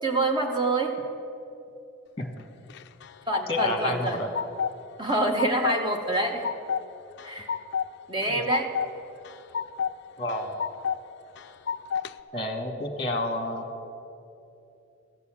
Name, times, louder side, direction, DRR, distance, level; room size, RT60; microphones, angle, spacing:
voice 1, 0.0-1.0 3.3-4.2 5.0-6.4 7.2-7.5 8.1-8.7, right 2 dB, 20° right, 2 dB, 0.9 m, -26 dB
sound 1, 2.7-3.7 4.1-4.8 5.1-5.8 6.1-6.8 7.2-7.9 8.2-8.9 9.2-9.9 10.3-11.0 11.4-12.1, left 7 dB, 50° left, 0.3 m, -30 dB
voice 2, 3.5-4.3 8.3-8.4 10.2-10.6 12.3-13.6, left 1 dB, 25° left, 4 dB, 1.3 m, -30 dB
14.0 x 6.9 x 8.5 m, 2.8 s
head